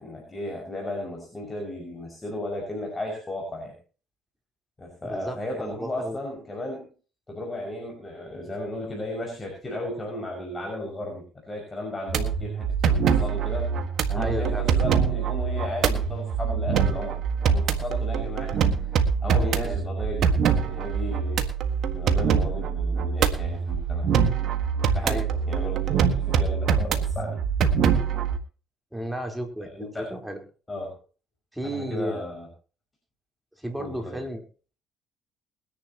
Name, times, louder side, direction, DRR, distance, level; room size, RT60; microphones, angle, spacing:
voice 1, 0.0-3.7 4.8-6.9 7.3-13.7 14.1-17.2 17.5-21.5 21.9-24.5 24.9-27.4 29.6-30.1 30.7-31.0 31.6-32.5 33.8-34.2, left 1 dB, 20° left, 0 dB, 6.0 m, -35 dB
voice 2, 5.0-6.2 14.1-14.7 19.4-19.8 25.0-25.4 28.9-30.4 31.5-32.3 33.6-34.4, equal, 5° right, 3 dB, 4.1 m, -33 dB
sound 1, 12.1-28.4, right 6 dB, 65° right, 1.7 m, -24 dB
21.5 x 10.5 x 3.0 m, 0.37 s
supercardioid pair, 70°, 0 cm